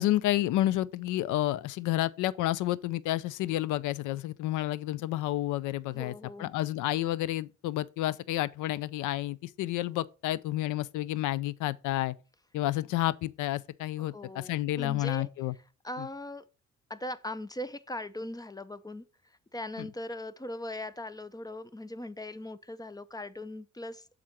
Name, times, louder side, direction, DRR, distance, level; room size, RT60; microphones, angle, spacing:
voice 1, 0.0-6.1 6.4-12.1 12.5-15.5 16.0-16.1, left 15 dB, 90° left, 0.5 m, -30 dB
voice 2, 5.9-6.5 14.0-15.3 15.8-16.4 16.9-19.0 19.5-24.1, left 1 dB, 15° left, 0.5 m, -40 dB
7.6 x 3.9 x 5.7 m
cardioid pair, 90°, 30 cm